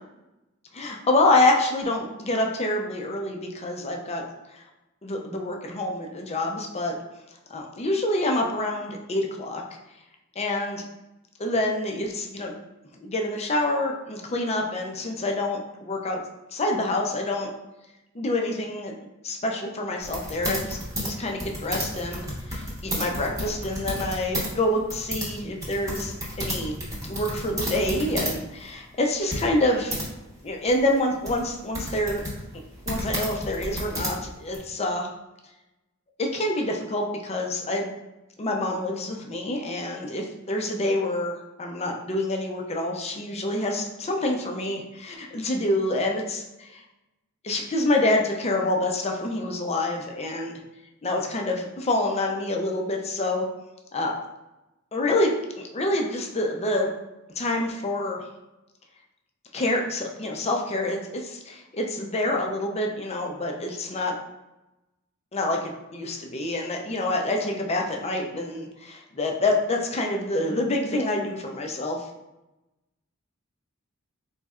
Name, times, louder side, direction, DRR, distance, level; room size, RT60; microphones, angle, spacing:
voice 1, 0.7-4.2 4.5-4.6 5.0-6.9 7.5-9.6 10.4-10.8 11.4-12.5 13.0-16.2 16.5-17.5 18.1-26.7 27.1-29.9 30.4-32.2 32.9-35.1 36.2-37.9 38.4-46.8 47.4-50.6 51.0-53.4 53.9-54.1 54.9-56.9 57.4-58.2 59.5-64.1 65.3-72.1, left 1 dB, 30° left, 1 dB, 0.5 m, -27 dB
sound 1, 20.0-24.5 24.8-28.4 28.7-28.8 29.3-30.0 30.7-34.6, equal, 15° right, 1.0 m, -31 dB
4.2 x 3.1 x 2.4 m, 0.98 s
head